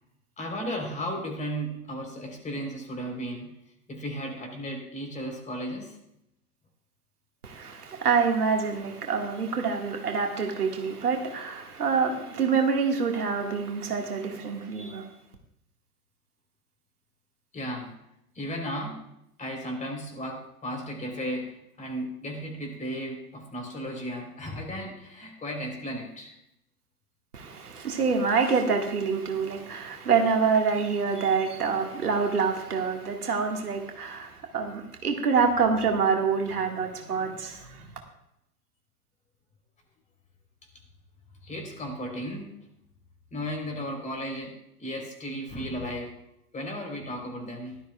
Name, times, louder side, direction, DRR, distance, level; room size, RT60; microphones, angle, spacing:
voice 1, 0.4-3.5 3.9-6.0 17.5-18.0 18.3-19.0 19.4-26.3 41.4-42.5 43.3-46.1 46.5-47.8, equal, 15° left, 3.8 m, -35 dB
voice 2, 7.4-15.1 27.3-37.9, right 5 dB, 75° right, 1.9 m, -26 dB
17.5 x 12.5 x 2.4 m
figure-of-eight pair, 100°, 46 cm